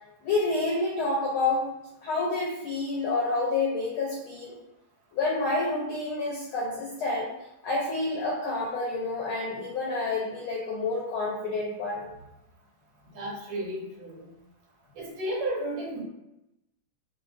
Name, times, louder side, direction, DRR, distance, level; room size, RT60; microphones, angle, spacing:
voice 1, 0.2-1.6 2.0-4.6 5.1-7.3 7.6-12.1, left 3 dB, 85° left, -4 dB, 1.1 m, -28 dB
voice 2, 13.1-14.3 14.9-16.0, right 1 dB, 70° right, -4 dB, 2.2 m, -33 dB
5.0 x 3.7 x 2.6 m, 0.90 s
omnidirectional pair, 3.3 m